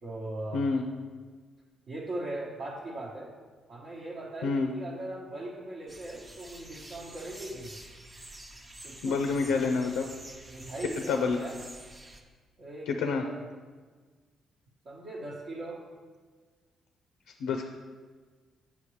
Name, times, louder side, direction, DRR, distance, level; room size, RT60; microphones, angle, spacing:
voice 1, 0.0-0.7 1.9-3.3 3.7-7.8 8.8-9.7 10.5-11.6 12.6-13.4 14.8-15.8, right 1 dB, 55° right, -5 dB, 1.0 m, -39 dB
voice 2, 0.5-0.9 4.4-4.7 9.0-10.1 11.1-11.4 12.9-13.2 17.4-17.7, left 4 dB, 90° left, 4 dB, 0.4 m, -27 dB
sound 1, 5.9-12.2, right 1 dB, 25° right, 0.7 m, -48 dB
7.1 x 5.8 x 3.1 m, 1.5 s
cardioid pair, 90°, 0 cm